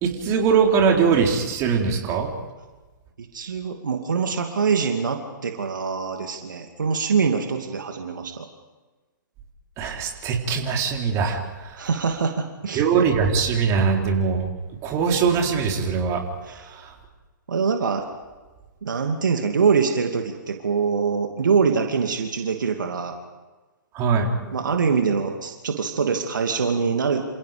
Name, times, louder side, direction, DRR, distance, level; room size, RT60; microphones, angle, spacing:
voice 1, 0.0-2.3 9.8-11.8 12.7-14.5 14.8-16.2 16.7-16.9 23.9-24.3, right 6 dB, 25° right, 1 dB, 4.0 m, -21 dB
voice 2, 3.2-8.5 11.8-12.8 16.5-16.6 17.5-18.0 18.8-23.2 24.5-27.2, right 5 dB, 65° right, 4 dB, 2.6 m, -24 dB
28.5 x 28.0 x 5.2 m, 1.2 s
figure-of-eight pair, 120°, 11 cm